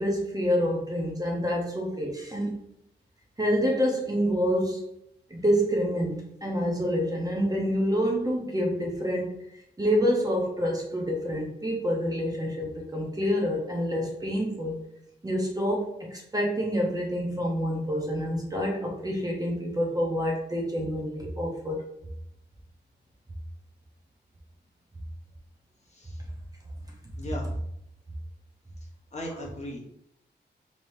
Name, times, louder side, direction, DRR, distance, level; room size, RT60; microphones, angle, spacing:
voice 1, 0.0-2.5 3.4-4.8 5.3-9.3 9.8-14.8 15.2-21.8, equal, 20° right, -1 dB, 0.8 m, -27 dB
voice 2, 25.9-26.2 27.2-27.5 29.1-29.8, left 1 dB, 40° left, -3 dB, 1.1 m, -37 dB
3.3 x 2.9 x 2.7 m, 0.77 s
cardioid pair, 85°, 19 cm